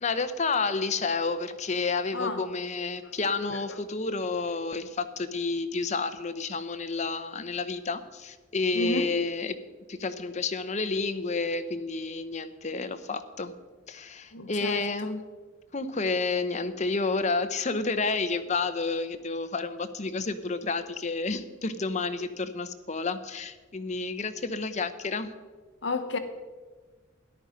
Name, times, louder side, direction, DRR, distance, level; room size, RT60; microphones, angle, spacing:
voice 1, 0.0-9.5 9.9-13.5 13.9-15.2 15.7-25.3, left 3 dB, 35° left, 10 dB, 0.8 m, -30 dB
voice 2, 2.1-2.4 3.0-3.8 8.7-9.1 14.3-15.1 25.8-26.2, left 2 dB, 60° left, 8 dB, 1.1 m, -33 dB
13.5 x 11.0 x 5.1 m, 1.4 s
head